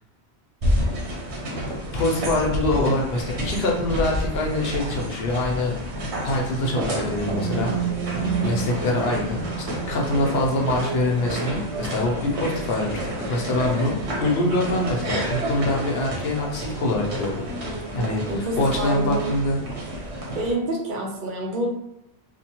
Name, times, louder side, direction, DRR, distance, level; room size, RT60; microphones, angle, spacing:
sound 1, 0.6-20.5, equal, 85° right, 1.0 m, -30 dB
voice 1, 1.9-5.8 6.2-7.8 8.4-17.5 17.9-19.6, left 2 dB, 70° left, -1 dB, 0.8 m, -24 dB
sound 2, 7.2-15.0, right 9 dB, 5° left, 1.0 m, -34 dB
voice 2, 8.2-8.6 18.3-19.2 20.3-21.7, right 1 dB, 55° right, -1 dB, 0.7 m, -27 dB
2.9 x 2.1 x 2.9 m, 0.86 s
omnidirectional pair, 1.1 m